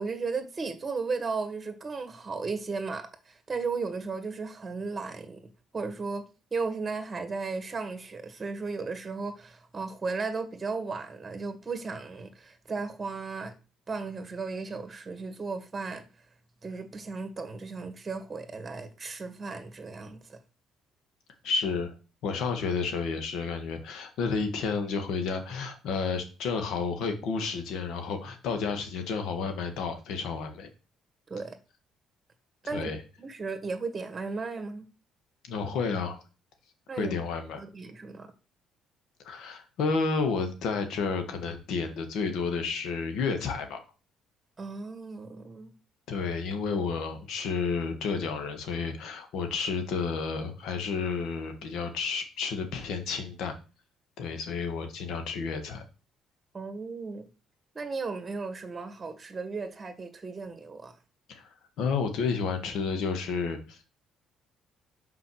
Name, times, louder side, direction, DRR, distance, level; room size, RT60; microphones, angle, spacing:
voice 1, 0.0-5.4 5.7-6.2 6.5-13.5 13.9-16.0 16.6-20.4 31.3-31.6 32.6-32.9 33.2-34.8 36.9-37.1 37.6-38.3 44.6-45.7 56.5-57.3 57.8-60.9, right 4 dB, 25° right, 1.8 m, -35 dB
voice 2, 21.4-22.0 22.2-30.7 32.7-33.0 35.4-36.2 37.0-37.6 39.2-43.8 46.1-53.5 54.2-55.8 61.3-61.4 61.8-63.8, left 5 dB, 75° left, 1.8 m, -31 dB
5.9 x 5.1 x 6.4 m
cardioid pair, 90°, 0 cm